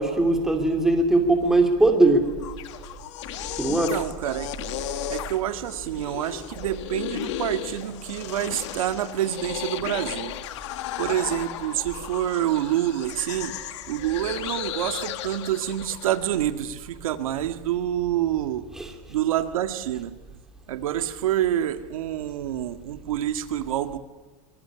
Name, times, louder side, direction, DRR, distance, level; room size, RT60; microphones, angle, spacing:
voice 1, 0.0-2.3 3.6-3.9 18.8-18.9, right 2 dB, ahead, 2.8 m, -20 dB
sound 1, 2.3-16.4, left 12 dB, 55° left, 1.8 m, -35 dB
voice 2, 3.7-4.5 5.1-10.3 11.0-13.6 13.9-18.7 19.1-20.1 20.7-24.0, right 12 dB, 85° right, 1.9 m, -27 dB
24.5 x 19.5 x 10.0 m
supercardioid pair, 170°, 17 cm